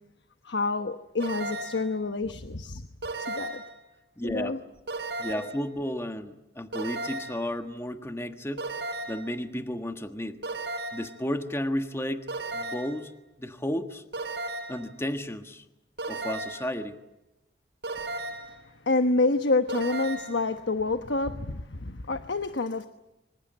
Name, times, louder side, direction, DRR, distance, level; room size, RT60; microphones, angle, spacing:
voice 1, 0.4-2.9 3.2-3.6 4.2-4.6 18.5-18.6 18.9-22.9, left 3 dB, 80° left, 1.1 m, -28 dB
sound 1, 1.2-1.9 3.0-3.8 4.9-5.6 6.7-7.5 8.6-9.3 10.4-11.2 12.3-13.0 14.1-14.9 16.0-16.7 17.8-18.6 19.7-20.4, right 2 dB, 75° right, 5.1 m, -35 dB
voice 2, 4.2-4.6 5.2-8.7 9.1-10.4 10.9-12.3 12.5-13.1 13.4-14.0 14.7-15.6 16.1-16.9, equal, 15° left, 1.4 m, -33 dB
25.5 x 24.5 x 7.6 m
head